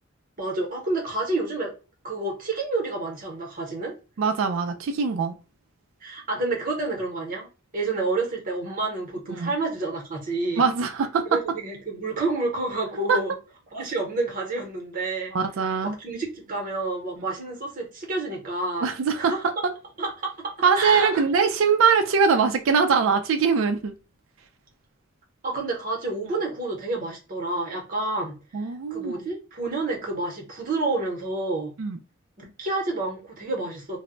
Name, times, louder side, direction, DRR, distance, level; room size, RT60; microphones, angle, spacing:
voice 1, 0.4-1.7 2.0-3.9 6.0-7.5 7.7-10.6 11.3-13.3 13.7-15.3 15.8-18.9 19.2-19.4 20.0-21.2 25.4-28.4 28.9-31.7 32.4-34.0, right 2 dB, 40° right, 0.8 m, -29 dB
voice 2, 4.2-5.3 9.3-9.5 10.6-11.2 13.1-13.2 15.3-15.9 18.8-19.3 20.6-23.9 28.5-29.1 31.8-32.0, right 5 dB, 65° right, 0.3 m, -22 dB
2.1 x 2.0 x 3.6 m
head